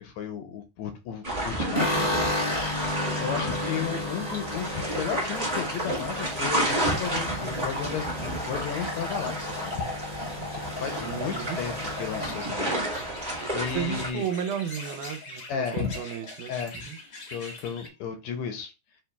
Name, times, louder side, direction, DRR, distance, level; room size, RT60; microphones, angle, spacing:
voice 1, 0.0-2.1 3.2-9.9 10.5-12.7 13.5-14.3 15.5-15.9 16.5-16.8 17.3-18.7, left 7 dB, 75° left, 1.8 m, -34 dB
sound 1, 1.2-14.1, right 1 dB, 55° right, 0.4 m, -31 dB
sound 2, 1.7-14.0 14.3-15.0 15.2-15.3 15.6-16.3, left 2 dB, 35° left, 0.5 m, -34 dB
sound 3, 10.6-17.9, left 2 dB, 60° left, 0.8 m, -44 dB
voice 2, 11.0-11.6 13.7-16.5 16.9-17.0, right 9 dB, 85° right, 2.2 m, -33 dB
6.8 x 3.1 x 2.2 m
omnidirectional pair, 3.5 m